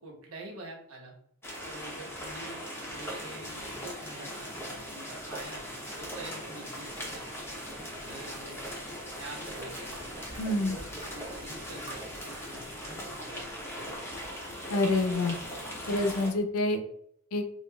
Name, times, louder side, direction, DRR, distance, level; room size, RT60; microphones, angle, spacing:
voice 1, 0.0-1.1 1.6-5.7 6.0-7.3 8.0-8.7 9.2-10.1 10.7-14.1, right 2 dB, 70° right, -1 dB, 1.1 m, -47 dB
sound 1, 1.4-16.3, equal, 10° left, 0.7 m, -40 dB
sound 2, 6.8-14.4, right 1 dB, 20° right, 0.9 m, -49 dB
voice 2, 10.4-10.8 14.7-15.4 15.9-16.8 17.3-17.4, left 2 dB, 85° left, 7 dB, 0.5 m, -27 dB
5.0 x 2.4 x 2.3 m, 0.70 s
head